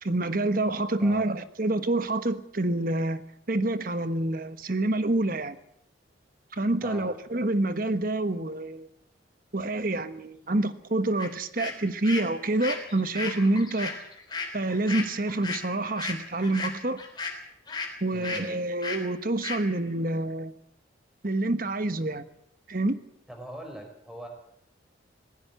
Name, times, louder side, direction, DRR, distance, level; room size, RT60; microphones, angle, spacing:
voice 1, 0.0-3.2 3.5-5.6 6.5-8.9 9.5-13.9 14.5-17.0 18.0-20.5 21.2-22.3 22.7-23.0, right 2 dB, 45° right, 1.2 m, -27 dB
sound 1, 11.2-11.3 11.6-17.9 18.2-18.4 18.8-19.0 19.4-19.6, left 4 dB, 20° left, 3.6 m, -35 dB
voice 2, 18.1-18.5 23.3-24.3, equal, ahead, 4.6 m, -42 dB
20.0 x 16.0 x 8.3 m
head